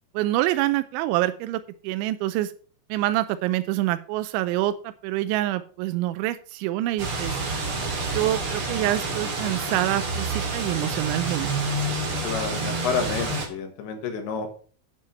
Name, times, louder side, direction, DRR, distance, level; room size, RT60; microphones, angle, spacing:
voice 1, 0.1-2.5 2.9-7.4 8.1-11.5, right 15 dB, 85° right, 11 dB, 2.7 m, -26 dB
sound 1, 7.0-13.5, right 2 dB, 40° right, 2.2 m, -28 dB
voice 2, 12.2-14.5, left 5 dB, 70° left, 6 dB, 3.6 m, -29 dB
9.1 x 7.6 x 5.7 m, 0.42 s
omnidirectional pair, 5.9 m